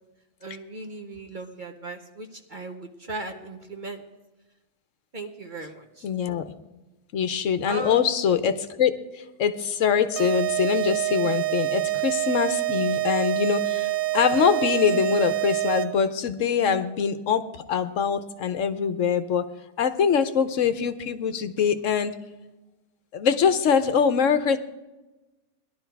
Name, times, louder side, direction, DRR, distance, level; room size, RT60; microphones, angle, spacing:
voice 1, 0.4-4.0 5.1-6.1 7.6-8.0, right 2 dB, 40° right, 5 dB, 0.9 m, -37 dB
voice 2, 6.0-6.5 7.1-17.4 17.7-19.4 19.8-22.1 23.1-24.6, left 7 dB, 65° left, 11 dB, 1.0 m, -23 dB
sound 1, 10.2-16.1, right 18 dB, 70° right, 1.0 m, -26 dB
17.5 x 11.5 x 4.6 m, 1.1 s
omnidirectional pair, 1.5 m